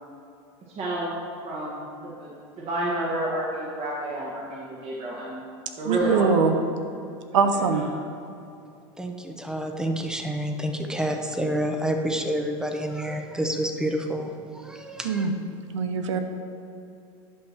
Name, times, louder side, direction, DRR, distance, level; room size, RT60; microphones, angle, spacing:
voice 1, 0.8-1.1 1.4-5.4 5.8-6.3 7.3-7.8, right 1 dB, 40° right, -5 dB, 1.7 m, -30 dB
voice 2, 5.9-6.5 7.3-7.8 15.0-15.3 15.7-16.2, right 5 dB, 90° right, 7 dB, 0.9 m, -22 dB
voice 3, 9.0-15.3, equal, 5° right, 4 dB, 0.8 m, -28 dB
11.0 x 5.7 x 4.5 m, 2.6 s
supercardioid pair, 110°, 15 cm